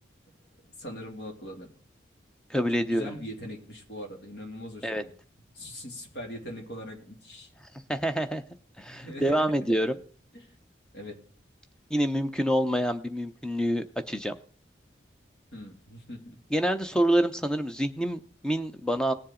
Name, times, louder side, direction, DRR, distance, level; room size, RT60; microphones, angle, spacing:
voice 1, 0.8-1.7 2.9-5.1 5.5-7.5 8.9-9.5 10.3-10.5 10.9-11.2 15.5-16.4, equal, 65° left, 2 dB, 2.8 m, -41 dB
voice 2, 2.5-3.2 4.8-5.0 7.9-8.4 8.8-9.9 11.9-14.3 16.5-19.1, equal, 5° left, 8 dB, 0.7 m, -27 dB
18.5 x 7.2 x 3.8 m, 0.42 s
head